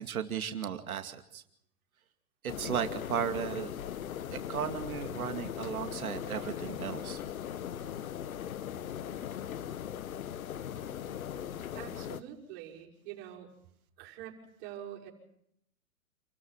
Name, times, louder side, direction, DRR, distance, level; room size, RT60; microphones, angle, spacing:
voice 1, 0.0-1.4 2.4-3.7 4.3-7.2, right 8 dB, 75° right, 7 dB, 2.5 m, -35 dB
sound 1, 2.5-12.2, left 9 dB, 75° left, 1.5 m, -39 dB
voice 2, 11.7-13.5 14.0-15.1, right 11 dB, 45° right, -2 dB, 6.2 m, -45 dB
28.5 x 14.0 x 7.6 m, 0.74 s
hypercardioid pair, 130°, 43 cm